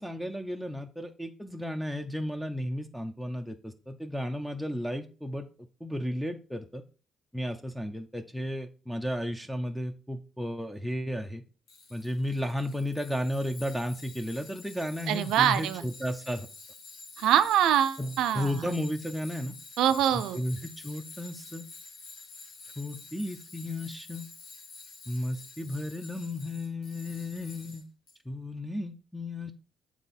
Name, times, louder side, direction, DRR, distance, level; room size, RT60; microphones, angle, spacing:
voice 1, 0.0-5.5 5.8-6.8 7.3-11.4 11.9-16.5 18.0-19.5 20.1-21.7 22.8-24.3 25.1-27.9 28.3-29.5, left 1 dB, ahead, 6 dB, 0.6 m, -34 dB
Tools, 11.7-28.1, left 4 dB, 90° left, 1.4 m, -49 dB
voice 2, 15.1-15.8 17.2-18.7 19.8-20.4, right 10 dB, 85° right, 11 dB, 0.5 m, -24 dB
7.4 x 3.5 x 4.1 m, 0.35 s
cardioid pair, 90°, 0 cm